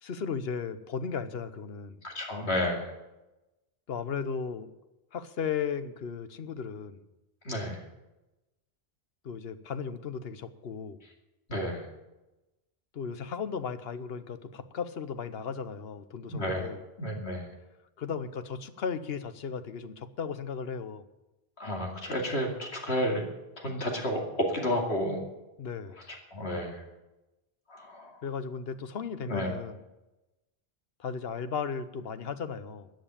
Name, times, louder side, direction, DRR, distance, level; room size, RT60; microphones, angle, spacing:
voice 1, 0.0-2.0 3.9-4.7 5.1-7.0 9.2-11.0 12.9-16.8 18.0-21.0 25.6-26.0 28.2-29.8 31.0-32.9, left 6 dB, 70° left, 12 dB, 1.0 m, -35 dB
voice 2, 2.0-2.9 7.4-7.8 11.5-11.8 16.3-16.6 17.0-17.5 21.6-23.3 23.6-25.2 26.1-26.8 27.7-28.1 29.3-29.5, equal, 85° left, 1 dB, 2.8 m, -31 dB
14.0 x 7.9 x 8.8 m, 1.0 s
omnidirectional pair, 1.1 m